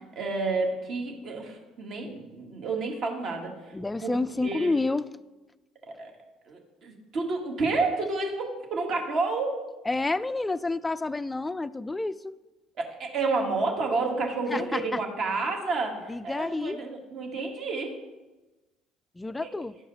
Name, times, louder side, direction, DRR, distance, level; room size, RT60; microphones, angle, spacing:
voice 1, 0.0-3.7 4.0-4.1 4.4-4.7 5.8-6.1 6.5-9.6 12.8-18.0 19.4-19.5, right 3 dB, 55° right, 1 dB, 1.9 m, -30 dB
voice 2, 3.7-5.1 9.9-12.4 14.5-15.0 16.1-16.8 19.2-19.8, left 2 dB, 15° left, 16 dB, 0.3 m, -29 dB
12.0 x 4.8 x 4.1 m, 1.1 s
supercardioid pair, 80°, 0 cm